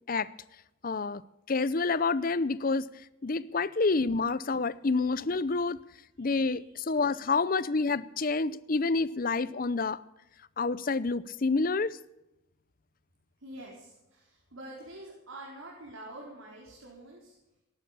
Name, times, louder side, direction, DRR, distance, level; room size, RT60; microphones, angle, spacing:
voice 1, 0.8-1.2 1.5-2.9 3.2-5.8 6.2-10.0 10.6-12.0, left 3 dB, 45° left, 0.6 m, -28 dB
voice 2, 6.2-6.7 7.0-7.3 13.4-17.3, right 1 dB, 85° right, 4.4 m, -47 dB
18.5 x 11.5 x 6.9 m
head